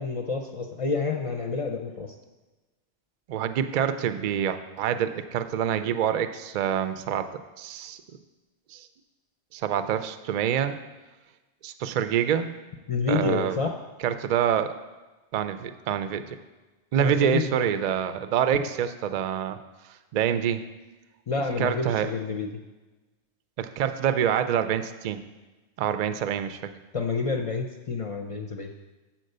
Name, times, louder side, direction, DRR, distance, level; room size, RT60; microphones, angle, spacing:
voice 1, 0.0-2.1 12.9-13.7 17.0-17.6 21.3-22.5 26.9-28.7, left 4 dB, 45° left, 2 dB, 0.4 m, -28 dB
voice 2, 3.3-7.3 7.6-8.0 8.7-8.9 9.5-10.8 11.6-12.5 13.1-13.6 14.0-14.7 15.3-16.4 16.9-19.6 20.1-20.6 21.6-22.1 23.6-25.2 25.8-26.7, right 9 dB, 60° right, 11 dB, 0.4 m, -26 dB
7.6 x 4.5 x 6.6 m, 1.2 s
omnidirectional pair, 1.2 m